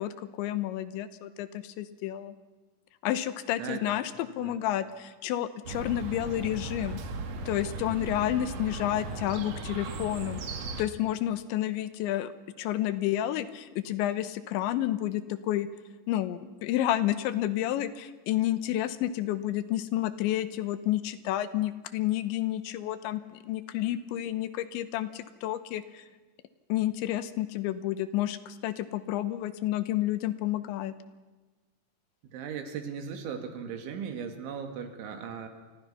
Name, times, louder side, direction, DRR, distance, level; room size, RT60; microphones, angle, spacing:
voice 1, 0.0-2.4 3.0-7.0 7.5-10.4 10.8-12.3 12.6-15.7 16.1-26.0 26.7-30.9, left 13 dB, 85° left, 13 dB, 3.3 m, -30 dB
voice 2, 3.6-4.0 4.4-4.6 32.3-35.5, right 7 dB, 90° right, 6 dB, 4.6 m, -37 dB
Chirp tweet, 5.6-10.8, right 3 dB, 55° right, 2.1 m, -37 dB
30.0 x 24.5 x 5.8 m, 1.2 s
omnidirectional pair, 5.3 m